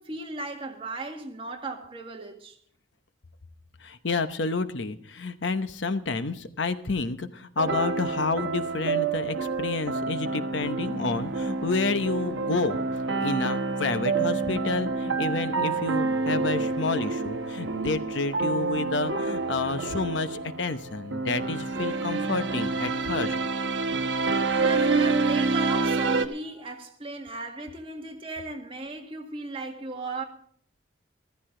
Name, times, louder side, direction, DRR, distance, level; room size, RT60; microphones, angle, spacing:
voice 1, 0.0-2.6 24.6-30.2, right 3 dB, 30° right, 1.8 m, -36 dB
voice 2, 3.8-12.8 13.2-23.4, left 3 dB, 70° left, 0.9 m, -30 dB
sound 1, 7.6-26.3, right 3 dB, 70° right, 1.1 m, -28 dB
14.5 x 14.0 x 3.8 m
head